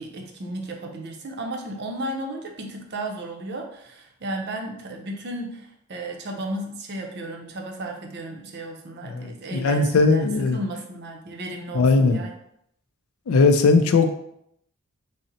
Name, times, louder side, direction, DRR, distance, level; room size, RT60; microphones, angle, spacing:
voice 1, 0.0-12.3, right 1 dB, 50° right, 2 dB, 0.6 m, -34 dB
voice 2, 9.0-10.6 11.7-12.2 13.3-14.1, left 3 dB, 70° left, 8 dB, 0.4 m, -19 dB
3.9 x 2.0 x 4.0 m, 0.73 s
head